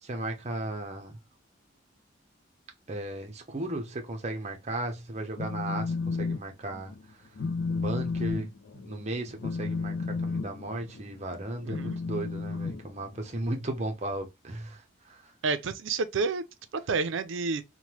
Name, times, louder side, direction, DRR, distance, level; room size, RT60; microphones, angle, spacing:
voice 1, 0.0-1.1 2.9-6.9 7.7-8.5 8.8-15.3, right 1 dB, 35° right, 0.6 m, -35 dB
Telephone, 5.2-6.4 6.7-7.0 7.4-13.5, left 4 dB, 65° left, 0.4 m, -33 dB
voice 2, 11.6-12.0 15.4-16.4 16.9-17.6, right 4 dB, 75° right, 0.4 m, -29 dB
3.2 x 2.1 x 2.8 m
head